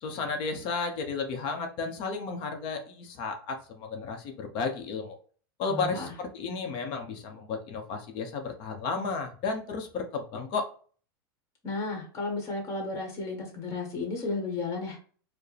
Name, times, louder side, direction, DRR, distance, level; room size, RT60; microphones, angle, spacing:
voice 1, 0.0-5.2 5.6-10.7, left 4 dB, 50° left, 5 dB, 0.8 m, -33 dB
voice 2, 5.7-6.1 11.6-15.0, left 3 dB, 25° left, 2 dB, 1.4 m, -33 dB
4.5 x 2.2 x 3.3 m, 0.42 s
supercardioid pair, 120°, 12 cm